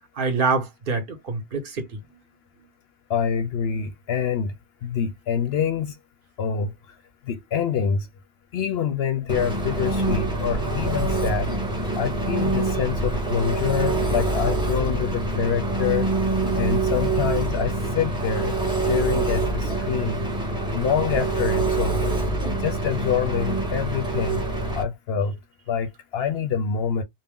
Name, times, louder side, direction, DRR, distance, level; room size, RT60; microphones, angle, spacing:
voice 1, 0.2-2.2, right 4 dB, 50° right, 0.9 m, -26 dB
voice 2, 3.1-4.5 4.8-6.0 6.4-6.7 7.3-8.1 8.5-11.5 12.0-16.1 16.6-18.5 18.8-20.2 20.7-22.2 22.6-24.4 24.7-25.4 25.7-27.0, left 7 dB, 65° left, 0.7 m, -26 dB
Engine, 9.3-24.8, right 2 dB, 5° right, 0.7 m, -25 dB
2.6 x 2.0 x 3.5 m
omnidirectional pair, 1.3 m